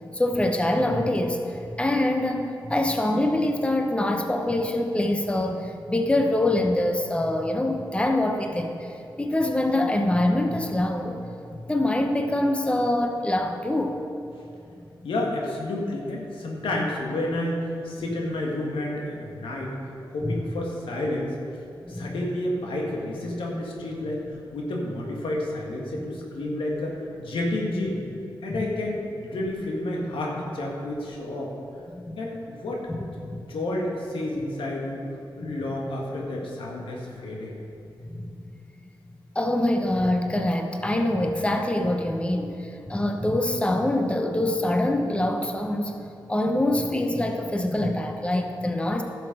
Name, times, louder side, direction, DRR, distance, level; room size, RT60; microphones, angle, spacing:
voice 1, 0.0-11.3 11.7-14.0 20.2-20.4 21.9-22.2 28.5-28.7 31.9-32.2 32.9-33.0 33.2-33.4 38.0-38.3 39.3-46.0 46.3-49.0, left 1 dB, 15° left, 4 dB, 0.9 m, -25 dB
voice 2, 15.0-19.8 20.1-21.4 21.9-28.0 28.4-31.5 32.1-35.0 35.4-37.6, left 1 dB, 85° left, -1 dB, 1.6 m, -30 dB
11.5 x 6.8 x 5.0 m, 2.6 s
cardioid pair, 55°, 9 cm